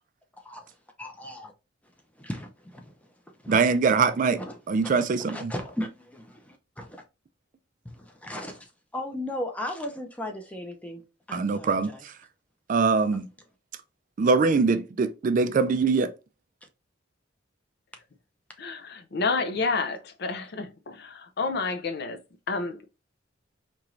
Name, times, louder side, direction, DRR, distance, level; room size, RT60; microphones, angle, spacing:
voice 1, 1.0-1.5 2.2-2.9 3.4-3.6 4.4-4.6 5.3-7.0 7.8-11.0 11.3-12.0, left 1 dB, 5° left, 0.6 m, -36 dB
voice 2, 3.5-4.4 4.7-5.5 11.3-12.1 12.7-13.3 14.2-16.1, right 4 dB, 40° right, 0.3 m, -23 dB
voice 3, 18.6-22.2 22.5-22.8, left 4 dB, 55° left, 0.5 m, -29 dB
4.4 x 3.0 x 2.5 m
head